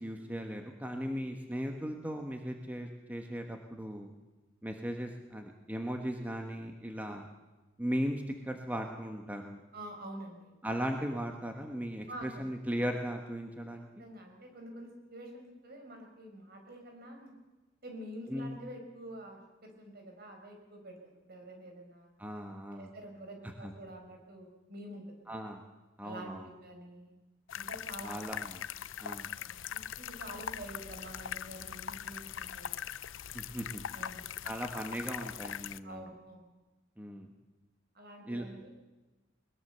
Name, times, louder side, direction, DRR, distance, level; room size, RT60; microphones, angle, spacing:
voice 1, 0.0-4.1 4.6-7.3 7.8-9.6 10.6-13.9 18.3-18.6 22.2-22.9 23.4-23.7 25.3-25.6 26.0-26.5 28.0-28.6 29.0-29.3 33.3-33.9 34.4-36.1 37.0-37.3 38.3-38.4, equal, 10° right, 3 dB, 1.4 m, -37 dB
voice 2, 9.7-10.5 12.1-12.4 12.7-12.8 14.0-17.3 17.8-21.0 21.2-22.1 22.7-25.0 26.0-27.1 27.5-28.1 29.4-32.7 33.9-34.3 35.8-36.5 37.9-38.7, right 1 dB, 50° right, 3 dB, 5.1 m, -47 dB
sound 1, 27.5-35.8, left 9 dB, 75° left, 0.6 m, -41 dB
21.5 x 21.0 x 6.9 m, 1.2 s
head